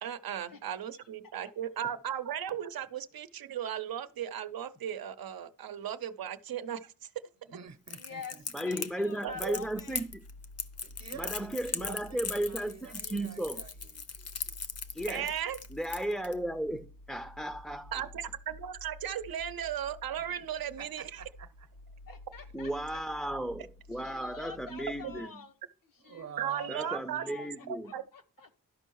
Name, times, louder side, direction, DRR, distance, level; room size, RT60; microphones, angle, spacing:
voice 1, 0.0-7.1 9.2-9.5 15.1-15.6 17.9-21.2 25.0-25.1 26.4-27.2 27.9-28.0, right 10 dB, 85° right, 0.6 m, -36 dB
voice 2, 7.4-8.4 10.8-14.0 20.3-20.5 20.8-21.7 22.4-22.5 24.5-24.6 26.0-27.0, right 7 dB, 50° right, 0.8 m, -49 dB
Crackle, 7.9-16.3, left 5 dB, 45° left, 0.6 m, -39 dB
voice 3, 8.0-10.0 20.8-20.9 22.1-23.3 23.9-25.5 25.8-28.6, left 5 dB, 70° left, 1.2 m, -48 dB
voice 4, 8.5-10.1 11.1-13.6 14.9-15.3 15.7-18.0 22.5-25.3 26.7-27.9, right 1 dB, ahead, 0.4 m, -35 dB
sound 1, 9.3-25.2, left 2 dB, 90° left, 0.9 m, -52 dB
12.0 x 5.4 x 4.6 m
wide cardioid pair, 150°, 34 cm